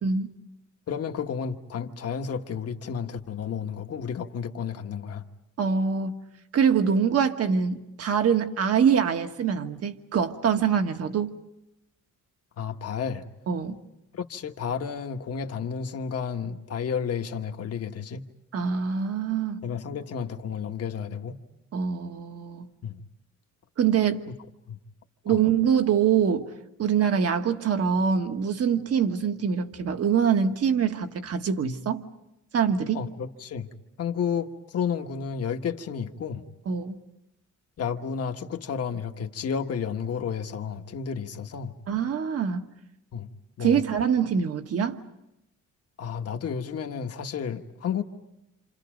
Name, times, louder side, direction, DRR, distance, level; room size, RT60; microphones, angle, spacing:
voice 1, 0.9-5.2 12.6-13.2 14.1-18.2 19.6-21.4 22.8-23.0 24.7-24.8 25.3-25.4 32.9-33.7 34.0-36.4 37.8-41.7 43.1-43.3 43.6-43.8 46.0-48.0, left 7 dB, 50° left, 1.5 m, -31 dB
voice 2, 5.6-6.2 6.5-11.4 13.5-13.8 18.5-19.6 21.7-22.7 23.8-24.3 25.2-26.5 26.8-32.0 32.5-33.0 36.6-37.0 41.9-42.7 43.6-45.0, right 7 dB, 50° right, 1.5 m, -24 dB
28.5 x 28.0 x 5.2 m
cardioid pair, 140°, 31 cm